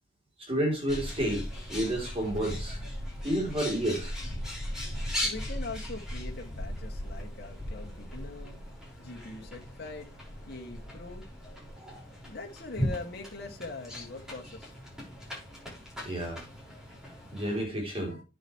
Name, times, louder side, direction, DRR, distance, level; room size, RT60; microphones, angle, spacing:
voice 1, 0.4-2.8 3.2-4.2 5.1-5.3 11.8-12.0 16.0-16.4 17.3-18.2, right 1 dB, 30° right, 4.0 m, -31 dB
Bird, 0.9-17.6, left 1 dB, 5° right, 5.7 m, -38 dB
voice 2, 5.2-8.6 9.0-10.1 10.5-11.3 12.2-14.7, left 3 dB, 55° left, 2.6 m, -42 dB
10.0 x 8.7 x 3.4 m
head